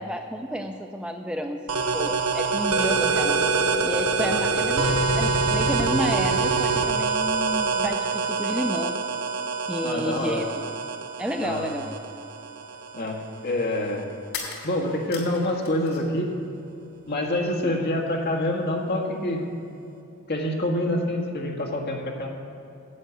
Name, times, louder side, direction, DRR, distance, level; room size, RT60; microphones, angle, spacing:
voice 1, 0.0-3.4 3.8-9.0 9.7-10.7 11.2-11.9, equal, 5° right, 4 dB, 0.4 m, -31 dB
sound 1, 1.7-13.1, right 4 dB, 85° right, 1.0 m, -25 dB
voice 2, 9.8-10.5 11.4-11.7 12.9-14.1 14.6-16.3 17.1-19.5 20.3-22.3, left 1 dB, 45° left, 0 dB, 1.7 m, -26 dB
sound 2, 14.3-16.2 16.5-17.4, left 5 dB, 85° left, 2.7 m, -39 dB
11.0 x 8.0 x 8.1 m, 2.7 s
head